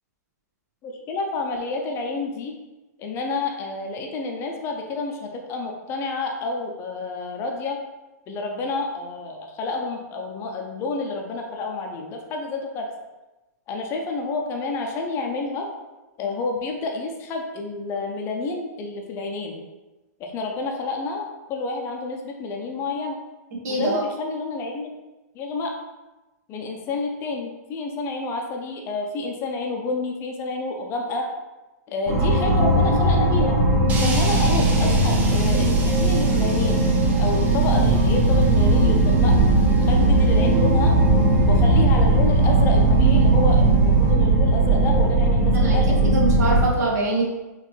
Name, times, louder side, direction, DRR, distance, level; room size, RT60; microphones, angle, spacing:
voice 1, 0.8-2.6 3.0-7.8 8.3-12.9 13.7-15.7 16.2-19.6 20.2-23.2 23.7-24.9 25.3-25.7 26.5-31.3 31.9-33.6 34.0-36.8 37.2-39.3 39.7-41.0 41.5-46.1, left 3 dB, 25° left, 2 dB, 0.5 m, -29 dB
voice 2, 23.6-24.0 34.8-34.9 45.5-45.8 46.0-47.2, right 2 dB, 65° right, -3 dB, 1.3 m, -24 dB
sound 1, 32.1-46.6, right 2 dB, 40° right, 1.2 m, -18 dB
sound 2, 33.9-44.1, right 3 dB, 15° right, 0.5 m, -33 dB
4.0 x 3.1 x 3.1 m, 1.1 s
hypercardioid pair, 140°, 10 cm